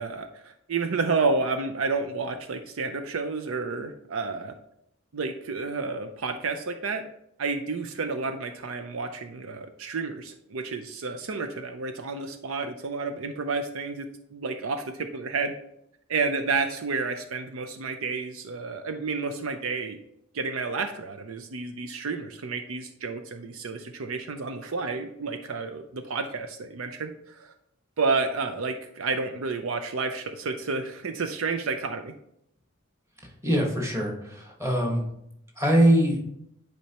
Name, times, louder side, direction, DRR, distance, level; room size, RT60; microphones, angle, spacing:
voice 1, 0.0-4.5 5.1-7.1 7.4-15.5 16.1-20.0 20.3-27.5 28.0-32.1, right 4 dB, 75° right, 8 dB, 0.5 m, -30 dB
voice 2, 33.4-35.0 35.6-36.2, right 1 dB, 15° right, -1 dB, 1.4 m, -22 dB
10.5 x 4.4 x 2.9 m, 0.76 s
head